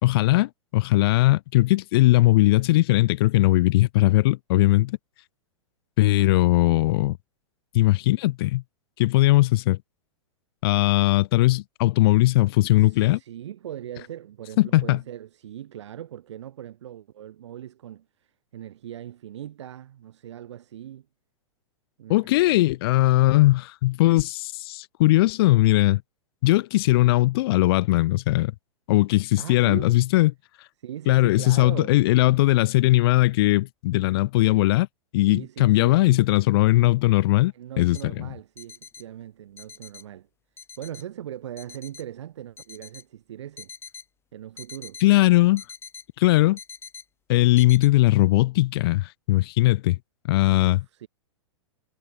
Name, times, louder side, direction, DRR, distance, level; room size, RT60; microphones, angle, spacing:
voice 1, 0.0-5.0 6.0-7.2 7.7-8.6 9.0-9.8 10.6-13.2 14.6-15.0 22.1-26.0 26.4-28.5 28.9-30.3 31.1-34.9 35.1-38.3 45.0-45.6 46.2-46.6 47.3-50.0 50.3-50.8, left 18 dB, 50° left, 1.0 m, -19 dB
voice 2, 12.8-21.1 22.0-22.2 22.5-22.7 29.4-30.0 30.8-32.0 35.3-36.2 37.5-40.3 40.8-43.7 44.3-45.0 50.5-51.1, right 11 dB, 60° right, 5.5 m, -40 dB
sound 1, 37.9-38.0 38.6-39.0 39.6-40.0 40.6-41.0 41.6-42.0 42.6-43.0 43.6-44.0 44.6-45.0 45.6-46.0 46.6-47.0 47.6-47.9, left 6 dB, 15° left, 4.5 m, -43 dB
figure-of-eight pair, 100°, 17 cm